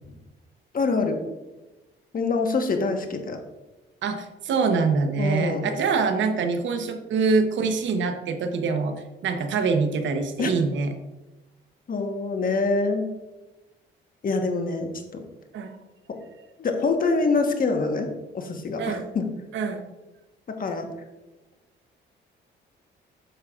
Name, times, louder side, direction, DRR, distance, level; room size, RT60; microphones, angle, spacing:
voice 1, 0.7-1.2 2.1-3.4 5.2-5.7 10.4-10.5 11.9-13.1 14.2-15.2 16.6-18.1 18.3-19.3 20.5-20.9, left 3 dB, 45° left, 4 dB, 1.2 m, -25 dB
voice 2, 4.0-10.9 15.5-15.8 18.8-19.1 19.5-19.9, right 4 dB, 70° right, 7 dB, 0.9 m, -25 dB
8.4 x 7.4 x 2.4 m, 1.1 s
cardioid pair, 90°, 20 cm